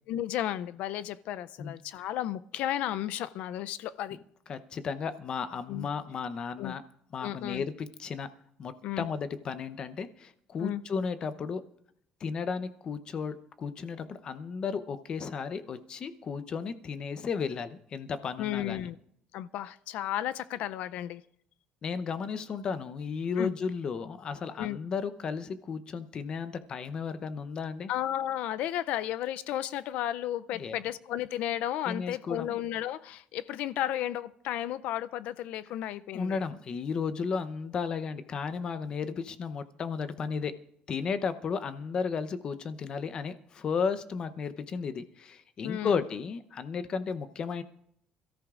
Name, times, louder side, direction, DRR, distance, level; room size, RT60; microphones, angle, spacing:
voice 1, 0.1-4.2 5.7-5.9 6.6-6.7 7.2-7.6 8.8-9.1 10.6-10.8 18.4-19.0 19.3-21.2 23.4-23.5 24.6-24.8 27.9-36.4 45.6-46.0, left 12 dB, 70° left, 0.4 m, -33 dB
voice 2, 4.5-6.8 7.1-8.3 8.6-11.6 12.2-18.9 21.8-27.9 30.5-30.8 31.9-32.6 36.1-40.5 40.9-47.6, left 5 dB, 35° left, 0.7 m, -34 dB
27.5 x 14.0 x 2.5 m
cardioid pair, 150°, 2 cm